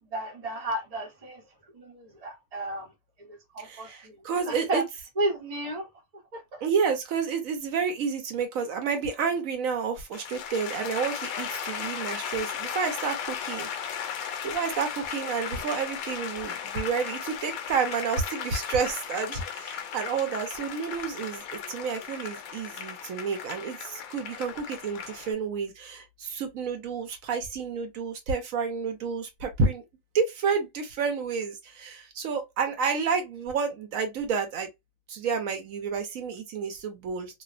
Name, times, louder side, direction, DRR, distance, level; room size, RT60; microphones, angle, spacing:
voice 1, 0.1-1.4 1.7-2.9 3.2-4.8 5.2-5.9 6.3-6.6, right 2 dB, 30° right, 0.8 m, -33 dB
voice 2, 3.6-4.8 6.6-13.7 14.4-21.4 21.7-29.8 30.1-34.7 35.1-37.4, right 5 dB, 75° right, 1.1 m, -30 dB
sound 1, 10.1-25.3, left 8 dB, 85° left, 1.0 m, -36 dB
2.7 x 2.1 x 2.4 m
omnidirectional pair, 1.4 m